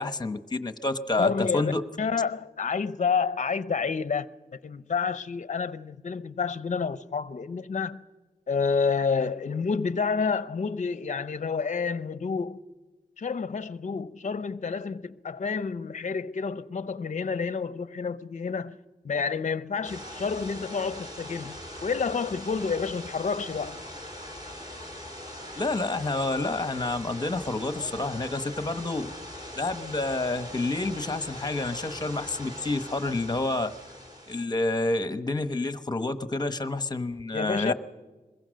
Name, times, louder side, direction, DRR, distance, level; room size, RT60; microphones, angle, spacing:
voice 1, 0.0-1.8 25.6-29.1 29.6-33.7 34.3-37.7, left 2 dB, 25° left, 1.1 m, -29 dB
voice 2, 1.2-1.7 2.0-8.0 8.5-12.6 13.2-18.8 19.0-23.8 37.3-37.7, left 5 dB, 50° left, 0.7 m, -29 dB
sound 1, 19.8-34.4, left 1 dB, 25° right, 4.9 m, -41 dB
22.0 x 22.0 x 6.4 m
wide cardioid pair, 130°, 16 cm